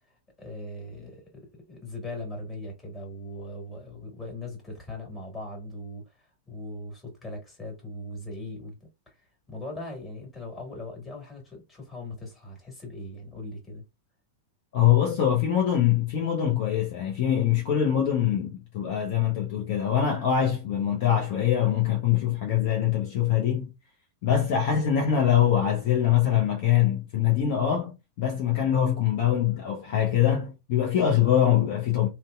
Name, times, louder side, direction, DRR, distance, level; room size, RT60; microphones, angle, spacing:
voice 1, 0.0-8.8 9.1-13.8, left 1 dB, 20° left, 1.6 m, -40 dB
voice 2, 14.7-23.7 24.2-27.9 28.2-32.1, left 10 dB, 50° left, 0.7 m, -23 dB
2.6 x 2.2 x 2.3 m
figure-of-eight pair, 95°, 0 cm